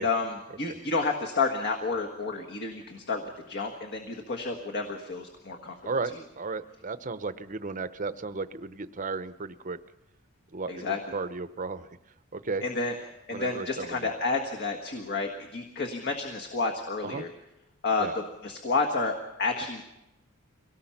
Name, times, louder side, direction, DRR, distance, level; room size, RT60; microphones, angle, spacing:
voice 1, 0.0-5.8 10.7-11.1 12.6-12.9 13.3-17.3 17.8-19.8, left 3 dB, 50° left, 2 dB, 1.6 m, -30 dB
voice 2, 5.8-9.8 10.5-11.9 12.3-12.6 13.3-14.1 17.0-17.2 18.0-18.1, right 4 dB, 35° right, 12 dB, 0.7 m, -34 dB
25.0 x 18.0 x 5.8 m, 0.94 s
head